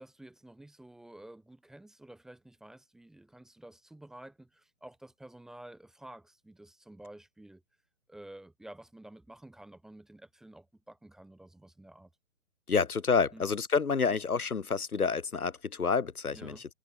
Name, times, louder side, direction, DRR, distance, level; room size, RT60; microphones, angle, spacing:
voice 1, 0.0-7.6 8.1-12.1 13.3-13.5 16.3-16.7, right 1 dB, ahead, 1.8 m, -51 dB
voice 2, 12.7-16.5, left 5 dB, 85° left, 2.9 m, -28 dB
hypercardioid pair, 165°, 43 cm